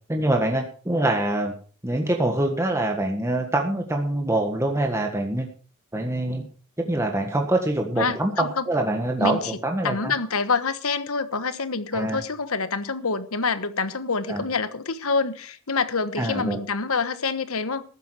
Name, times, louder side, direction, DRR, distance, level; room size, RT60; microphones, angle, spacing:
voice 1, 0.1-1.5 1.8-5.5 5.9-6.5 6.8-10.1 11.9-12.2 14.3-14.5 16.2-16.6, right 1 dB, 15° right, 1.6 m, -25 dB
voice 2, 8.0-8.6 9.2-9.6 9.8-17.8, left 4 dB, 70° left, 1.3 m, -26 dB
14.5 x 12.0 x 4.9 m
head